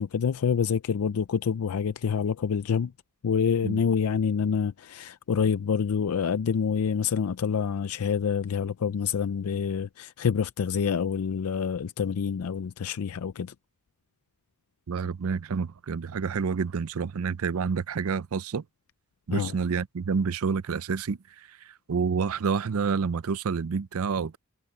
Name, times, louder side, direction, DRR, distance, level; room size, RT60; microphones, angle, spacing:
voice 1, 0.0-2.9 3.2-13.5 19.3-19.5, left 6 dB, 75° left, 0.4 m, -27 dB
voice 2, 14.9-18.6 19.3-24.4, right 5 dB, 70° right, 0.5 m, -29 dB
head